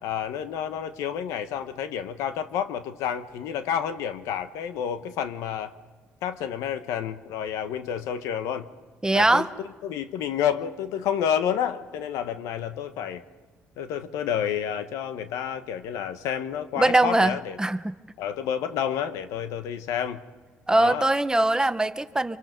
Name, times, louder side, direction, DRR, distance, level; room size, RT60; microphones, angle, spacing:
voice 1, 0.0-5.7 6.2-8.7 9.1-9.5 9.8-13.2 13.8-17.6 18.2-20.2 20.7-21.1, left 9 dB, 85° left, 10 dB, 1.2 m, -29 dB
voice 2, 9.0-9.5 16.7-17.9 20.7-22.4, right 2 dB, 15° right, 12 dB, 1.0 m, -22 dB
25.5 x 25.0 x 5.3 m, 1.3 s
supercardioid pair, 70°, 5 cm